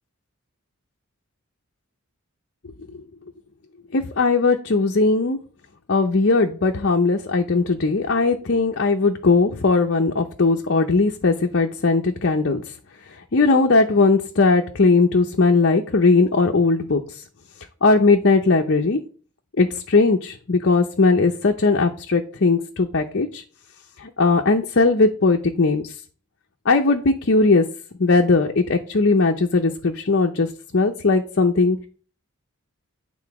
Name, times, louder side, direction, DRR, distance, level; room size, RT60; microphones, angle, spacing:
voice 1, 3.9-5.4 5.9-12.6 13.3-17.2 17.8-19.0 19.6-23.4 24.0-25.9 26.7-27.7 28.0-30.5 30.7-31.9, left 3 dB, 55° left, 3 dB, 0.7 m, -19 dB
9.6 x 3.8 x 6.0 m, 0.40 s
head